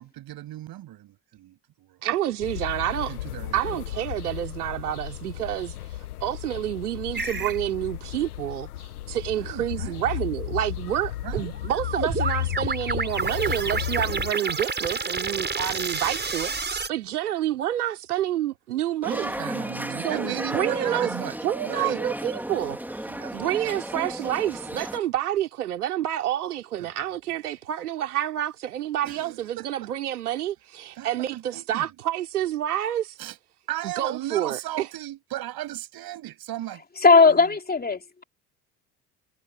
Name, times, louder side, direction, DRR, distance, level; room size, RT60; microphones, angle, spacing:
voice 1, 0.0-2.0 3.1-3.8 9.3-10.1 11.2-11.5 19.0-21.4 21.6-22.0 23.1-23.4 26.8-26.9 29.0-29.9 31.0-31.9 33.2-33.4 33.7-36.8, right 14 dB, 50° right, 7.4 m, -36 dB
voice 2, 2.0-3.1 3.5-5.7 6.2-19.3 20.0-21.1 21.4-33.2 33.8-34.9, right 12 dB, 75° right, 3.3 m, -28 dB
sound 1, 2.4-14.3, left 14 dB, 75° left, 1.5 m, -34 dB
sound 2, 7.1-7.6 11.3-16.9, right 4 dB, 20° right, 6.5 m, -29 dB
sound 3, 19.0-25.0, right 1 dB, 5° right, 3.9 m, -33 dB
voice 3, 37.0-38.2, left 4 dB, 20° left, 3.5 m, -18 dB
figure-of-eight pair, 55°, 46 cm